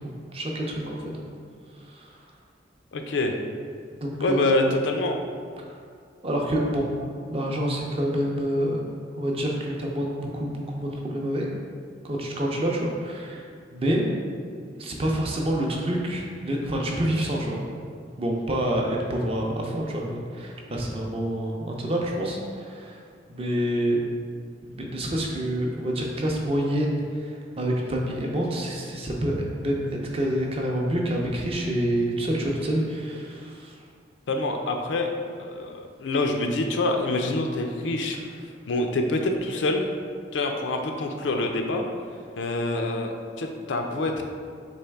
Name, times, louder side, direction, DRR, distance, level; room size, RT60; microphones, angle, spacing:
voice 1, 0.3-1.0 1.8-2.1 4.0-4.6 6.2-6.9 7.3-8.8 9.1-11.5 12.0-14.0 14.8-17.6 18.2-23.0 23.3-24.0 24.6-33.7, right 1 dB, 30° right, -1 dB, 0.5 m, -27 dB
voice 2, 2.9-3.3 4.2-5.2 34.3-38.2 38.7-39.9 40.3-41.8 42.4-44.2, left 2 dB, 80° left, 4 dB, 0.4 m, -26 dB
4.2 x 3.1 x 3.4 m, 2.2 s
head